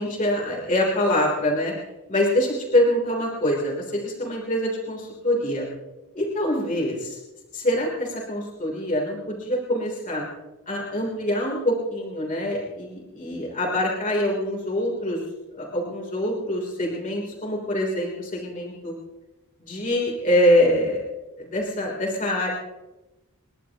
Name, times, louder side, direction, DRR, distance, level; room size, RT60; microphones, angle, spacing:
voice 1, 0.0-1.7 2.1-5.7 6.2-7.2 7.5-10.2 10.7-15.2 15.5-18.9 19.6-21.0 21.4-22.5, left 1 dB, 35° left, -2 dB, 3.5 m, -24 dB
29.0 x 11.5 x 3.0 m, 1.0 s
head